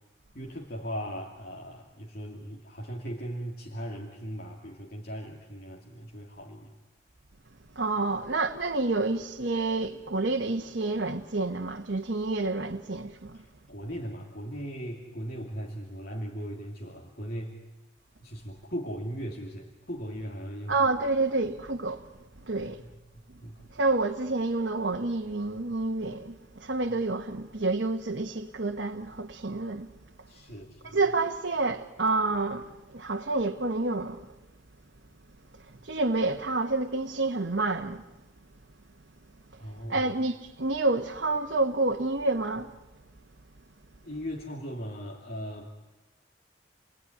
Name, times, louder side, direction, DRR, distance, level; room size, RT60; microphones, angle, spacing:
voice 1, 0.3-6.7 13.3-17.6 18.2-20.8 22.5-22.9 23.4-23.6 30.3-31.0 39.6-40.1 44.0-45.8, equal, 50° left, 2.6 m, -38 dB
voice 2, 7.7-13.4 20.7-22.1 22.4-22.8 23.7-29.9 30.8-34.2 35.6-38.0 39.9-42.8, right 3 dB, 70° right, 1.3 m, -28 dB
30.0 x 20.0 x 9.9 m
head